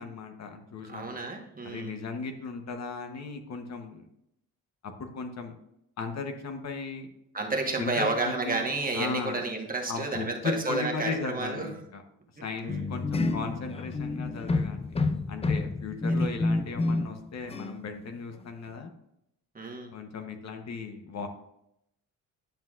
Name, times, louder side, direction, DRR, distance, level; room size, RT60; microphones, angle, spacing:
voice 1, 0.0-1.0 1.6-4.1 4.8-5.6 6.0-7.1 7.8-8.6 8.9-9.4 9.9-12.0 12.4-14.9 15.3-18.9 19.9-21.3, left 4 dB, 50° left, 5 dB, 1.0 m, -36 dB
voice 2, 0.8-1.9 7.3-11.7 12.4-12.9 16.2-16.3 19.5-19.9, right 3 dB, 25° right, 2 dB, 1.3 m, -31 dB
sound 1, 12.7-17.2 17.5-17.8, left 3 dB, 20° left, 0.4 m, -29 dB
10.5 x 5.7 x 2.4 m, 0.81 s
cardioid pair, 100°, 33 cm